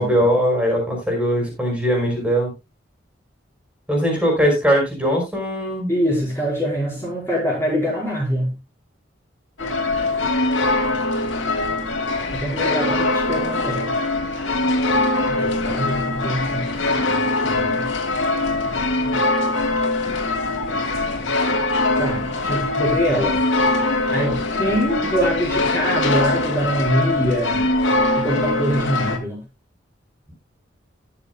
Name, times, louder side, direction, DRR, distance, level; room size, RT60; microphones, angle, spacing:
voice 1, 0.0-2.5 3.9-5.9, equal, 5° right, 1 dB, 5.1 m, -20 dB
voice 2, 5.9-8.5 12.3-14.0 15.3-17.9 18.6-19.1 20.7-20.9 22.0-23.4 24.1-27.6 28.2-29.4, equal, 15° left, -5 dB, 4.8 m, -24 dB
sound 1, 9.6-29.2, left 2 dB, 85° left, 2.5 m, -22 dB
20.5 x 7.1 x 2.3 m, 0.24 s
head